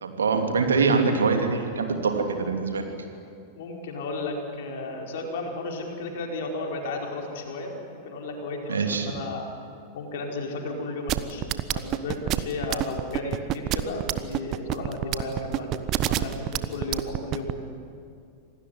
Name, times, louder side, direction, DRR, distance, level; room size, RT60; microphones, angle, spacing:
voice 1, 0.0-2.9 8.7-9.1, right 4 dB, 70° right, 4 dB, 2.9 m, -24 dB
voice 2, 3.5-9.5 9.9-17.7, left 2 dB, 55° left, 1 dB, 4.9 m, -34 dB
sound 1, 11.1-17.5, right 14 dB, 35° right, 1.0 m, -26 dB
27.0 x 19.0 x 9.6 m, 2.5 s
figure-of-eight pair, 90°, 0 cm